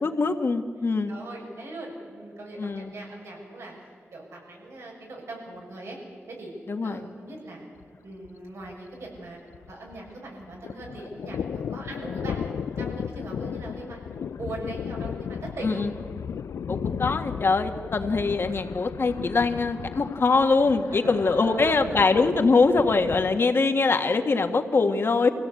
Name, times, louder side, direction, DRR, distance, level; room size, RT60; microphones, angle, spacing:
voice 1, 0.0-1.1 2.6-2.9 6.7-7.0 15.6-15.9 16.7-25.3, left 4 dB, 55° left, 6 dB, 1.6 m, -23 dB
voice 2, 0.8-6.0 6.3-6.5 6.8-7.7 8.0-9.4 9.7-15.8 20.9-22.1, right 2 dB, 90° right, -2 dB, 6.8 m, -40 dB
Thunder, 7.8-8.0 8.3-8.4 8.6-10.2 10.4-23.4, left 7 dB, 85° left, 0.5 m, -35 dB
24.0 x 16.5 x 8.4 m, 2.2 s
wide cardioid pair, 80°, 5 cm